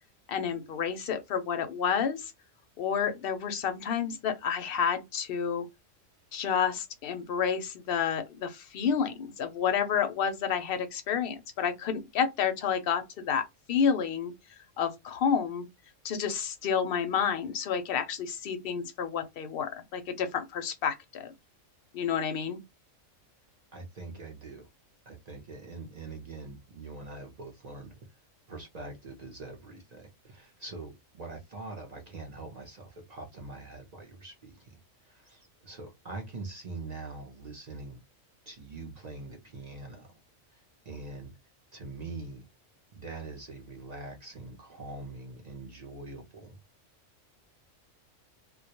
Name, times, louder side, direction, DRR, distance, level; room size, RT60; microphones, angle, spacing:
voice 1, 0.3-2.3 2.8-5.7 6.3-14.3 14.8-15.6 16.0-21.3 21.9-22.6, left 7 dB, 60° left, 0.7 m, -30 dB
voice 2, 23.7-24.7 25.1-27.9 28.5-38.0 38.5-40.2 40.5-41.3 41.7-42.4 42.9-46.6, right 3 dB, 45° right, 0.6 m, -43 dB
2.2 x 2.1 x 2.8 m
omnidirectional pair, 1.3 m